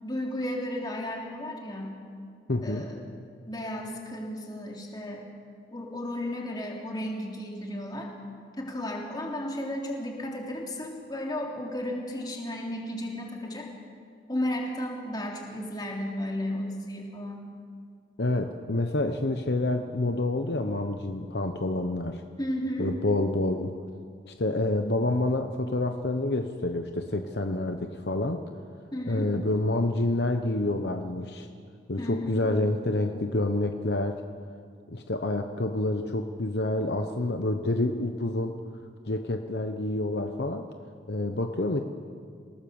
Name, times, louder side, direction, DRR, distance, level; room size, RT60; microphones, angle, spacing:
voice 1, 0.0-2.0 2.6-3.1 3.5-5.2 5.7-8.1 8.6-13.7 14.3-17.4 22.4-22.9 28.9-29.3 32.0-32.5, left 1 dB, 20° left, -1 dB, 3.5 m, -34 dB
voice 2, 2.5-2.9 18.2-22.2 22.8-23.8 24.3-28.4 29.1-31.5 31.9-34.2 34.9-38.6 39.0-40.7 41.1-41.8, left 2 dB, 60° left, 5 dB, 1.0 m, -28 dB
28.0 x 18.0 x 7.2 m, 2.2 s
head